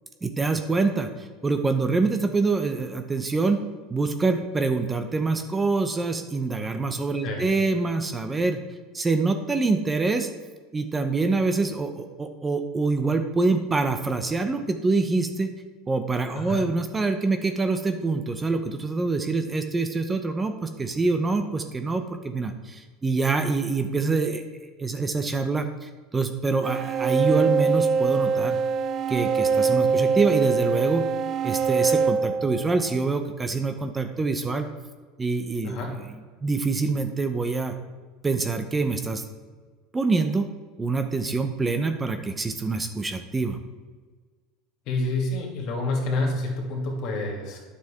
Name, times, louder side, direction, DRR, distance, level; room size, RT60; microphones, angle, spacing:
voice 1, 0.2-3.6 3.9-8.6 8.9-10.3 10.7-15.5 15.9-24.4 24.8-28.6 29.1-31.1 31.4-34.7 35.2-36.0 36.4-37.7 38.2-39.2 39.9-40.5 40.8-43.6, right 3 dB, 20° right, 7 dB, 0.7 m, -25 dB
voice 2, 7.2-7.6 16.3-16.6 35.6-35.9 44.9-47.6, left 2 dB, 60° left, 0 dB, 2.5 m, -28 dB
sound 1, 26.6-33.1, right 5 dB, 45° right, 0.4 m, -24 dB
9.3 x 6.8 x 3.6 m, 1.5 s
supercardioid pair, 105°, 0 cm